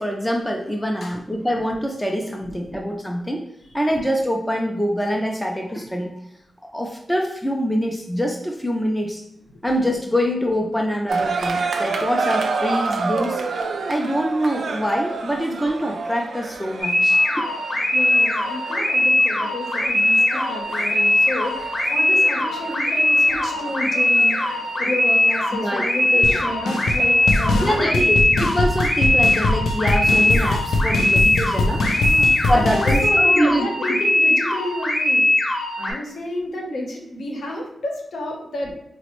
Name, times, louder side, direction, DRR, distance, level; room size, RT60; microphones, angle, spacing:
voice 1, 0.0-3.5 3.7-6.1 6.7-9.2 9.6-13.4 13.9-17.5 25.6-25.8 26.1-26.3 27.6-31.8 32.5-33.7, equal, 5° left, 1 dB, 0.3 m, -24 dB
sound 1, 11.1-27.9, right 4 dB, 85° right, 0.3 m, -30 dB
sound 2, 16.8-35.9, left 1 dB, 35° left, 0.7 m, -20 dB
voice 2, 17.9-24.4 24.8-28.3 30.0-30.3 32.0-38.7, left 1 dB, 70° left, 0 dB, 0.7 m, -31 dB
sound 3, 26.2-26.4 26.6-27.0 27.3-33.1, left 2 dB, 90° left, 0.3 m, -22 dB
4.1 x 2.0 x 2.9 m, 0.78 s
wide cardioid pair, 175°, 0 cm